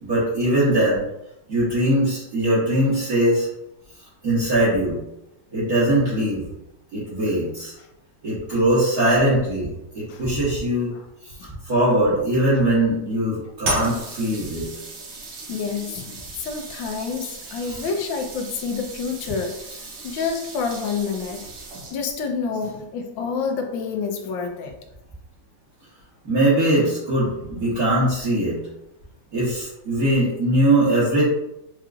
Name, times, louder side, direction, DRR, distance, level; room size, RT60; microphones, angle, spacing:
voice 1, 0.0-1.0 1.5-3.5 4.2-5.0 5.5-6.4 6.9-7.7 8.2-10.9 11.6-14.7 17.7-17.8 26.2-28.6 29.3-31.3, right 1 dB, 50° right, -11 dB, 1.7 m, -21 dB
sound 1, 13.6-22.2, right 2 dB, 70° right, 1.5 m, -35 dB
voice 2, 15.5-19.6 20.0-21.5 21.9-24.8, left 5 dB, 75° left, 4 dB, 1.2 m, -28 dB
4.8 x 2.9 x 2.4 m, 0.86 s
omnidirectional pair, 2.2 m